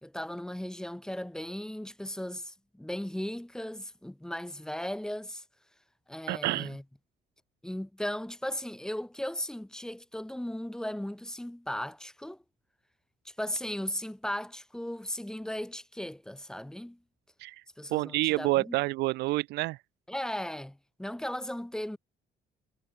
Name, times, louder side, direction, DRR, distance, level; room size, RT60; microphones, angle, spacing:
voice 1, 0.0-5.4 6.1-6.8 7.6-12.4 13.2-17.0 17.8-18.8 20.1-22.0, left 1 dB, 5° left, 1.0 m, -37 dB
voice 2, 6.3-6.8 17.4-17.6 17.9-19.8, right 20 dB, 80° right, 0.5 m, -28 dB
cardioid pair, 110°, 17 cm